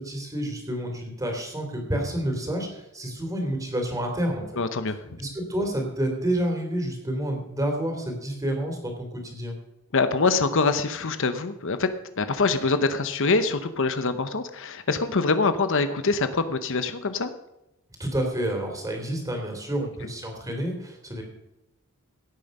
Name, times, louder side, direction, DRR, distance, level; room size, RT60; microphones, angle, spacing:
voice 1, 0.0-4.6 5.2-9.6 18.0-21.2, right 1 dB, 15° right, 2 dB, 3.3 m, -29 dB
voice 2, 4.6-5.0 9.9-11.9 12.2-17.3, left 4 dB, 60° left, 10 dB, 0.9 m, -24 dB
17.0 x 8.8 x 5.5 m, 0.89 s
head